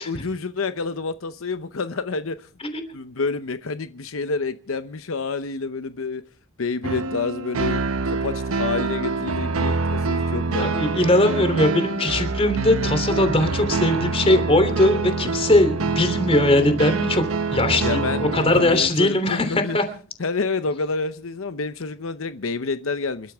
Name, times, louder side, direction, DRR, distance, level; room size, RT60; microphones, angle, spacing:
voice 1, 0.0-2.5 2.9-6.2 6.6-10.9 17.8-19.8 20.2-23.3, left 4 dB, 75° left, 0.8 m, -28 dB
sound 1, 6.8-18.8, right 3 dB, 85° right, 1.0 m, -25 dB
voice 2, 10.6-17.2 17.5-19.8, left 1 dB, 25° left, 3.1 m, -20 dB
28.5 x 13.0 x 3.5 m
head